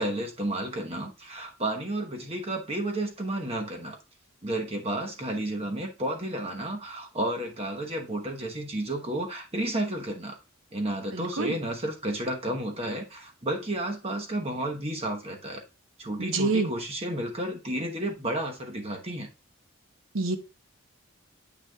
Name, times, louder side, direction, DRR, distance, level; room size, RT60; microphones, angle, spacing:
voice 1, 0.0-4.0 4.4-10.4 10.7-15.6 16.0-19.3, right 1 dB, 30° right, 2 dB, 1.0 m, -32 dB
voice 2, 11.1-11.6 16.2-16.7 20.1-20.4, right 3 dB, 65° right, 7 dB, 1.0 m, -27 dB
8.1 x 6.4 x 2.3 m, 0.29 s
head